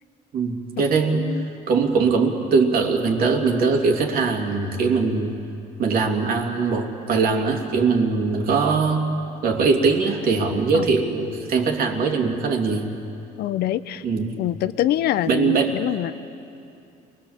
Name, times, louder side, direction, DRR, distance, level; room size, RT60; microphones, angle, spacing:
voice 1, 0.3-5.4 5.8-9.1 9.4-12.9 14.0-14.3 15.3-15.8, right 4 dB, 60° right, 2 dB, 2.8 m, -21 dB
voice 2, 1.1-1.5 10.7-10.9 13.4-14.0 14.4-16.3, left 12 dB, 70° left, 14 dB, 0.7 m, -25 dB
28.0 x 21.0 x 7.4 m, 2.6 s
cardioid pair, 110°, 17 cm